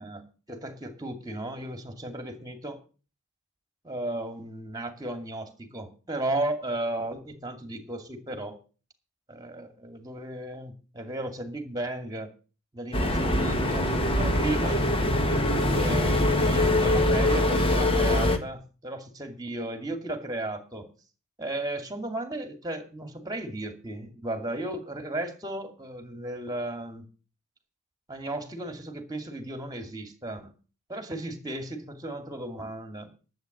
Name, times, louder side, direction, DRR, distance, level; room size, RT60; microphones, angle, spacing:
voice 1, 0.0-2.8 3.8-8.6 9.3-12.3 12.7-14.8 15.7-20.9 21.4-27.0 28.1-30.5 30.9-33.1, right 1 dB, 15° right, 7 dB, 2.3 m, -35 dB
sound 1, 12.9-18.4, left 1 dB, 25° left, 1.6 m, -23 dB
11.5 x 8.1 x 7.9 m, 0.37 s
head